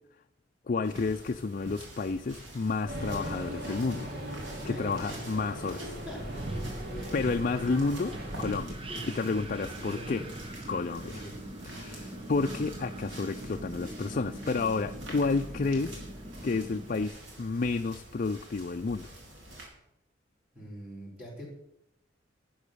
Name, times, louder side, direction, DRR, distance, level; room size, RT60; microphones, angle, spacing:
voice 1, 0.7-4.1 4.7-5.8 7.1-8.8 9.1-10.2 10.7-11.2 11.7-16.0 16.4-19.1, left 4 dB, 45° left, 8 dB, 0.4 m, -30 dB
sound 1, 0.8-19.7, right 1 dB, 80° right, 4.3 m, -48 dB
sound 2, 2.9-8.4, equal, 55° right, 2.8 m, -39 dB
voice 2, 4.6-5.1 5.6-6.2 6.9-7.2 8.9-9.4 9.8-10.3 11.0-11.4 20.5-21.5, equal, 5° right, -6 dB, 4.8 m, -44 dB
Wind, 6.1-17.1, right 1 dB, 30° right, 1.1 m, -41 dB
11.5 x 9.4 x 6.8 m, 0.83 s
head